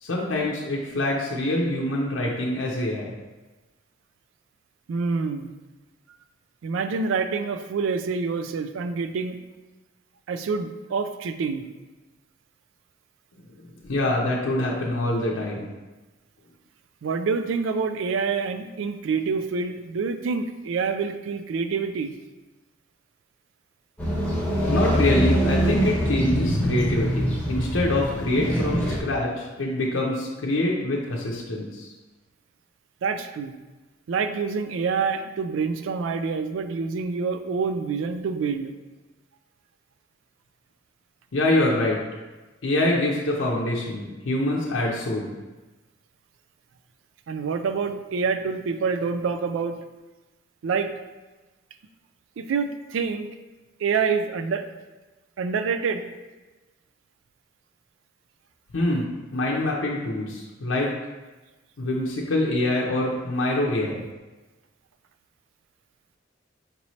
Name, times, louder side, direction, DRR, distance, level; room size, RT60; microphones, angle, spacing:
voice 1, 0.0-3.1 13.8-15.7 24.7-31.9 41.3-42.0 42.6-45.3 58.7-60.9 61.8-64.0, left 1 dB, 85° left, -3 dB, 0.6 m, -25 dB
voice 2, 4.9-5.5 6.6-9.4 10.3-11.6 17.0-22.1 33.0-33.5 34.1-38.7 47.3-49.8 50.6-50.9 52.4-53.3 53.8-54.7 55.4-56.0, right 5 dB, 80° right, 9 dB, 0.3 m, -27 dB
sound 1, 24.0-29.0, equal, 5° left, 1.0 m, -24 dB
5.2 x 3.0 x 2.8 m, 1.2 s
head